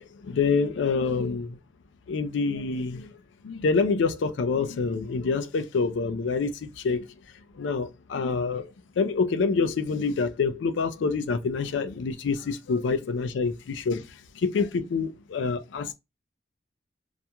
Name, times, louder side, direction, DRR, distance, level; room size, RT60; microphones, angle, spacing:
voice 1, 0.0-1.6 2.1-3.1 3.4-7.0 7.6-8.7 9.0-14.0 14.4-15.9, left 4 dB, 85° left, 0.4 m, -26 dB
2.4 x 2.2 x 2.8 m
head